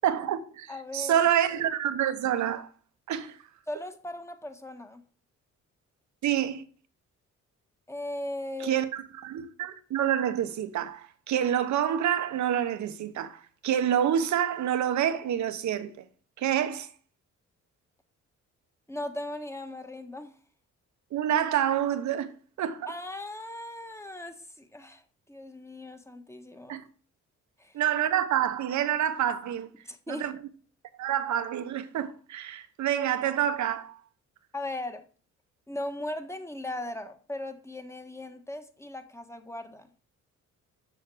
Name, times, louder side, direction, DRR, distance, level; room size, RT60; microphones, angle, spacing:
voice 1, 0.0-2.7 3.1-3.4 6.2-6.6 8.6-15.9 16.4-16.9 21.1-22.3 22.6-22.9 26.7-26.8 27.7-29.7 30.1-30.4 31.0-34.0, right 10 dB, 70° right, 1.1 m, -27 dB
voice 2, 0.7-1.2 3.7-5.0 7.9-8.8 18.9-20.3 22.9-25.0 25.3-26.8 27.6-27.8 29.8-30.3 34.5-35.0 35.7-39.9, left 1 dB, 10° left, 1.4 m, -38 dB
7.2 x 6.4 x 6.3 m
cardioid pair, 90°, 30 cm